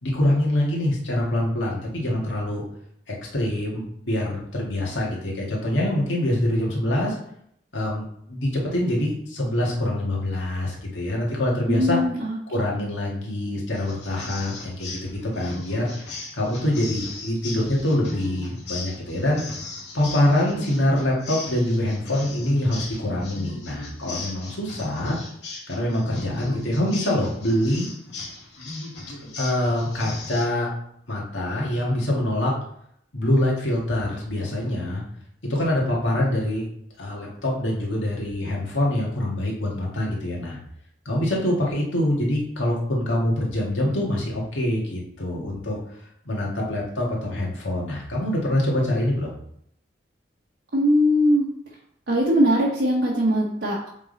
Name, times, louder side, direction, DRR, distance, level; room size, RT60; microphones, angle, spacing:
voice 1, 0.0-2.6 3.1-7.1 7.7-12.0 12.5-15.9 16.4-19.4 19.9-25.2 25.7-27.9 29.4-30.7 31.1-32.5 33.1-35.0 35.4-36.7 37.0-40.6 41.1-45.8 46.3-49.3, left 1 dB, 85° left, -3 dB, 2.0 m, -25 dB
voice 2, 11.7-12.3 50.7-51.5 52.1-53.9, equal, 65° right, -5 dB, 1.0 m, -20 dB
sound 1, 13.7-30.5, left 3 dB, 70° left, 2.2 m, -38 dB
7.2 x 3.7 x 4.0 m, 0.70 s
head